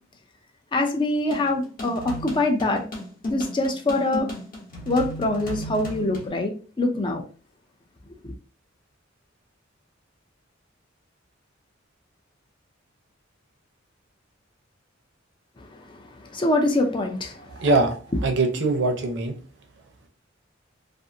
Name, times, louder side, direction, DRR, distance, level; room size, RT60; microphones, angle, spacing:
voice 1, 0.7-2.8 3.3-4.3 4.9-7.2 8.2-8.3 15.6-15.7 16.3-17.3, left 2 dB, 25° left, 4 dB, 0.4 m, -24 dB
sound 1, 1.3-6.3, left 1 dB, 45° left, 0.9 m, -35 dB
voice 2, 17.5-19.4, right 3 dB, 60° right, 3 dB, 0.6 m, -23 dB
2.5 x 2.4 x 2.6 m, 0.39 s
head